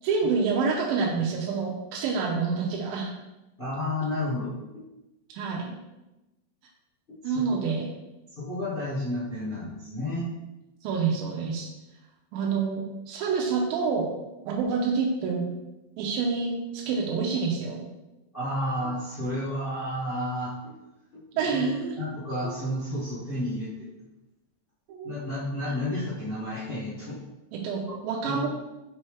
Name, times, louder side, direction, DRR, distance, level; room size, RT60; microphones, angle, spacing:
voice 1, 0.0-3.1 5.3-5.7 7.2-7.9 10.8-11.7 12.3-14.1 14.5-15.4 16.0-17.8 21.4-22.0 22.4-22.5 24.9-25.1 27.5-28.5, right 5 dB, 85° right, -1 dB, 2.5 m, -27 dB
voice 2, 3.6-4.8 7.1-7.7 8.4-10.3 18.3-20.7 21.1-21.6 22.0-23.7 25.0-27.2 28.2-28.5, left 1 dB, 35° left, -9 dB, 0.8 m, -31 dB
5.6 x 5.4 x 3.3 m, 0.99 s
omnidirectional pair, 4.1 m